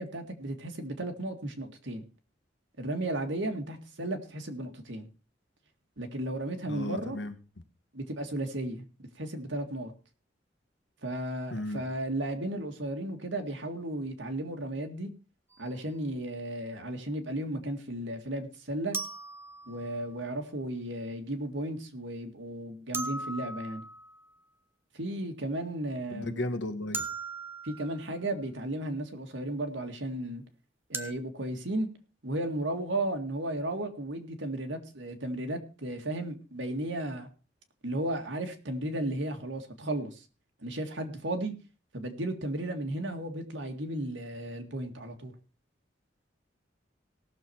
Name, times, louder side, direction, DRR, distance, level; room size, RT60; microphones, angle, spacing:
voice 1, 0.0-2.0 2.8-5.1 6.0-7.2 7.9-9.9 11.0-15.1 15.6-19.0 19.7-23.8 24.9-26.4 27.6-30.4 30.9-31.9 32.2-37.3 37.8-40.3 40.6-41.5 41.9-45.3, right 1 dB, 85° right, 5 dB, 2.0 m, -34 dB
voice 2, 6.7-7.3 11.5-11.8 26.1-27.0, left 1 dB, 75° left, 8 dB, 1.6 m, -34 dB
sound 1, 15.5-15.6 18.9-20.2 22.9-24.3 26.9-28.2 30.9-31.1, right 3 dB, 15° right, 0.9 m, -38 dB
18.0 x 6.8 x 4.5 m, 0.33 s
head